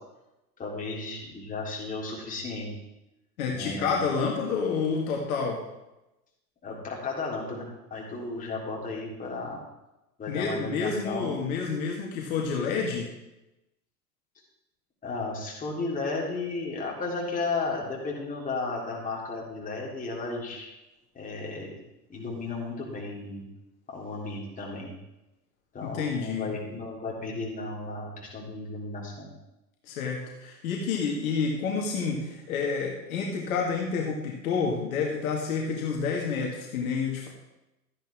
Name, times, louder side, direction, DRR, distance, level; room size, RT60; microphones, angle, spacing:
voice 1, 0.6-2.7 3.5-4.0 6.6-9.6 10.2-11.4 15.0-20.7 21.1-21.7 22.1-23.4 23.9-24.9 25.7-29.3, left 3 dB, 15° left, -4 dB, 3.6 m, -34 dB
voice 2, 3.4-5.6 10.3-13.1 25.8-26.5 29.9-37.3, left 5 dB, 55° left, -1 dB, 2.1 m, -29 dB
13.5 x 10.0 x 3.6 m, 0.95 s
figure-of-eight pair, 95°, 50 cm